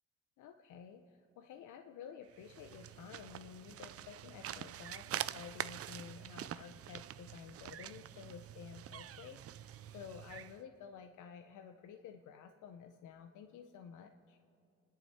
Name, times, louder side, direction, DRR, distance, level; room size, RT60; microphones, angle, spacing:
voice 1, 0.4-14.4, left 7 dB, 80° left, 6 dB, 0.7 m, -52 dB
sound 1, 2.3-10.6, right 11 dB, 50° right, 0.5 m, -45 dB
29.5 x 10.0 x 4.3 m, 2.5 s
cardioid pair, 90°, 30 cm